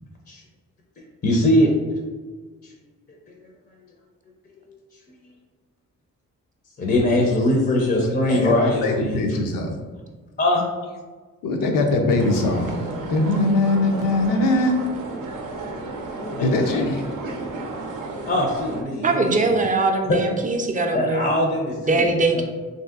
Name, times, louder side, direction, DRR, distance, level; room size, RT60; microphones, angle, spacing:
voice 1, 1.2-1.7 2.6-2.7 4.5-4.7 6.8-9.4 10.4-10.6 16.2-16.8 18.2-19.4 20.1-20.2 20.9-22.0 22.3-22.4, left 1 dB, 30° left, 0 dB, 0.5 m, -21 dB
voice 2, 8.8-9.7 11.4-14.8 16.4-17.1, left 2 dB, 80° left, 3 dB, 0.6 m, -21 dB
sound 1, 12.2-18.8, right 2 dB, 70° right, 0.5 m, -33 dB
voice 3, 19.0-21.3 21.9-22.4, right 3 dB, 25° right, 4 dB, 0.4 m, -21 dB
3.1 x 2.7 x 2.4 m, 1.4 s
cardioid pair, 70°, 33 cm